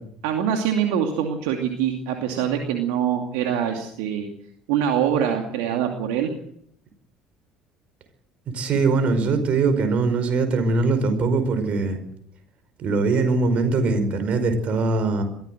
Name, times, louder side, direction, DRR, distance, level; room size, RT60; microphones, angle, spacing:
voice 1, 0.2-4.3 4.7-6.3, right 9 dB, 65° right, 3 dB, 2.5 m, -24 dB
voice 2, 8.5-12.0 12.8-15.2, right 3 dB, 50° right, 8 dB, 5.2 m, -21 dB
22.5 x 16.0 x 7.8 m, 0.67 s
hypercardioid pair, 60°, 3 cm